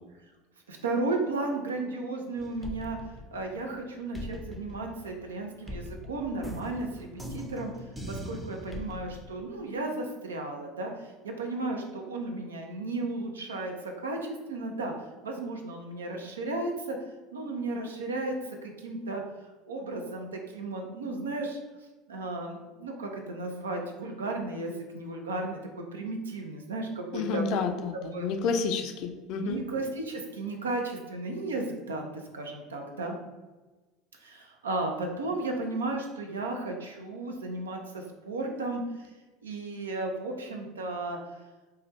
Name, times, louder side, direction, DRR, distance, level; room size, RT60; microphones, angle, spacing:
voice 1, 0.7-3.0 3.3-14.9 15.2-17.0 17.3-18.3 18.6-19.2 19.7-21.6 22.1-28.3 29.4-32.1 32.3-33.2 34.2-39.1 39.4-41.2, right 2 dB, 85° right, 2 dB, 0.5 m, -34 dB
sound 1, 2.4-3.8 4.1-9.2, left 1 dB, 15° right, 0.5 m, -41 dB
voice 2, 27.1-29.6, left 5 dB, 55° left, 6 dB, 0.4 m, -30 dB
3.1 x 2.2 x 3.0 m, 1.2 s
hypercardioid pair, 75°, 0 cm